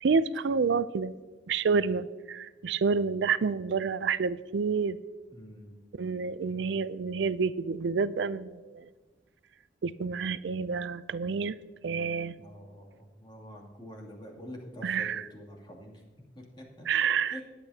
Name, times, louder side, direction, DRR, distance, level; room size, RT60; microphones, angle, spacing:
voice 1, 0.0-1.1 1.5-5.0 6.0-8.9 9.8-11.6 11.8-12.3 14.8-15.3 16.9-17.4, right 5 dB, 80° right, 16 dB, 0.4 m, -28 dB
voice 2, 5.3-5.7 6.5-6.6 12.4-16.0 16.3-16.9 17.3-17.4, equal, 25° left, -1 dB, 2.6 m, -46 dB
19.5 x 8.4 x 2.8 m, 1.3 s
head